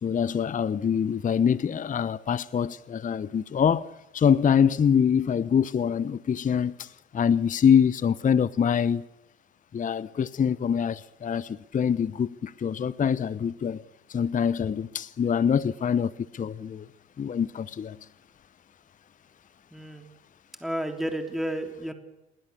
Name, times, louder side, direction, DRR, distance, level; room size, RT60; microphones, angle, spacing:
voice 1, 0.0-9.1 9.7-13.8 14.1-16.9 17.2-18.0, left 7 dB, 25° left, 0.8 m, -25 dB
voice 2, 19.7-20.0 20.6-21.9, right 1 dB, ahead, 3.4 m, -31 dB
27.0 x 22.0 x 7.2 m
hypercardioid pair, 65°, 33 cm